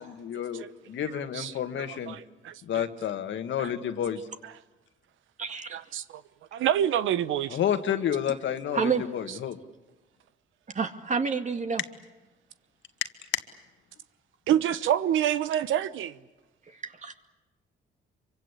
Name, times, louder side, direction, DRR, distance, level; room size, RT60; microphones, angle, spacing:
voice 1, 0.0-2.2 2.7-4.2 7.5-9.6, left 9 dB, 70° left, 2.0 m, -30 dB
voice 2, 1.9-2.8 3.6-3.7 5.7-6.0 6.5-7.6 14.5-16.2, right 10 dB, 80° right, 1.0 m, -27 dB
voice 3, 5.4-5.8 8.7-9.0 10.7-11.8 16.7-17.1, right 5 dB, 35° right, 2.3 m, -29 dB
25.5 x 24.5 x 8.5 m
cardioid pair, 90°, 20 cm